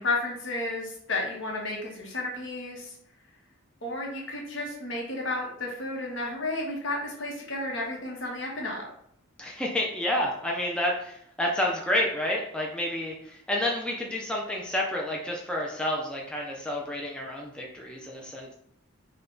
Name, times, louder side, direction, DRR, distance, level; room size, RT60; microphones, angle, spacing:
voice 1, 0.0-3.0 3.8-8.9, left 2 dB, 60° left, -1 dB, 1.2 m, -32 dB
voice 2, 9.4-18.5, left 1 dB, 5° left, -2 dB, 0.4 m, -29 dB
5.5 x 2.3 x 3.8 m, 0.72 s
head